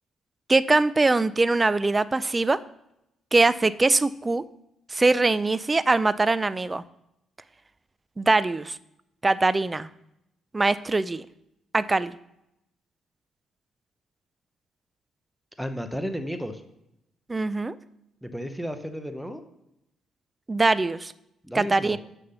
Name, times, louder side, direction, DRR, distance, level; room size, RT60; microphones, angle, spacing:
voice 1, 0.5-2.6 3.3-4.4 4.9-6.8 8.2-8.8 9.2-9.9 10.5-11.3 11.7-12.1 17.3-17.7 20.5-21.1 21.5-22.0, right 3 dB, 20° right, 16 dB, 0.4 m, -22 dB
voice 2, 15.6-16.6 18.2-19.4 21.4-22.0, equal, ahead, 8 dB, 0.8 m, -33 dB
7.1 x 6.6 x 5.6 m, 0.83 s
cardioid pair, 90°, 0 cm